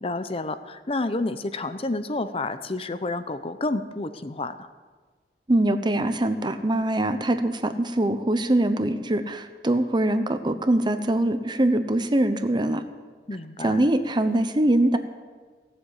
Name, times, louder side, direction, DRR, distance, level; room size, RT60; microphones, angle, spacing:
voice 1, 0.0-4.7 13.3-13.8, left 2 dB, 35° left, 11 dB, 0.7 m, -30 dB
voice 2, 5.5-12.8 13.6-15.0, right 1 dB, 25° right, 9 dB, 0.8 m, -23 dB
17.0 x 7.7 x 8.4 m, 1.4 s
head